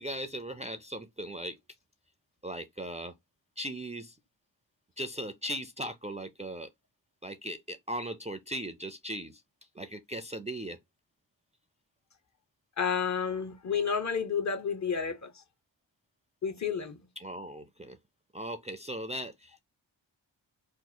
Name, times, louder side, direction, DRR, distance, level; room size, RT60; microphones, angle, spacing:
voice 1, 0.0-1.6 2.4-3.1 3.6-4.2 5.0-6.7 7.2-9.4 9.8-10.8 17.2-18.0 18.3-19.6, right 1 dB, 15° right, 0.4 m, -38 dB
voice 2, 12.8-15.4 16.4-17.0, left 6 dB, 40° left, 0.6 m, -31 dB
3.0 x 2.0 x 3.7 m
cardioid pair, 45°, 44 cm